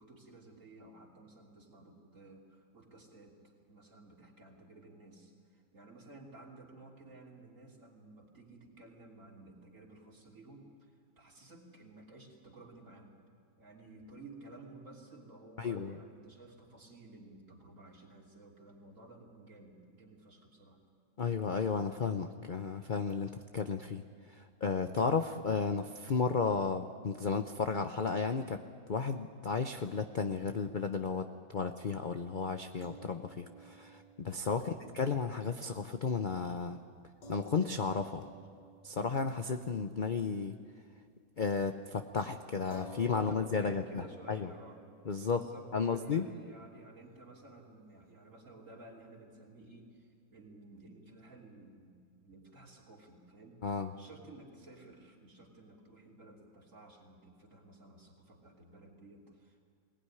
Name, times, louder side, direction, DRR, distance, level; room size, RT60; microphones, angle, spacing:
voice 1, 0.0-3.4 3.7-10.9 11.2-13.1 13.6-20.8 34.5-34.9 43.1-44.8 45.3-59.7, right 2 dB, 45° right, -1 dB, 3.4 m, -55 dB
voice 2, 15.6-16.0 21.2-24.0 24.3-28.6 28.9-36.8 37.3-38.3 38.8-40.6 41.4-44.5 45.1-45.5 45.7-46.3 53.6-53.9, left 5 dB, 45° left, 7 dB, 0.6 m, -33 dB
sound 1, 32.8-41.3 41.6-41.8 42.7-49.2, equal, 80° left, 2.6 m, -56 dB
21.5 x 18.5 x 9.8 m, 2.2 s
omnidirectional pair, 1.9 m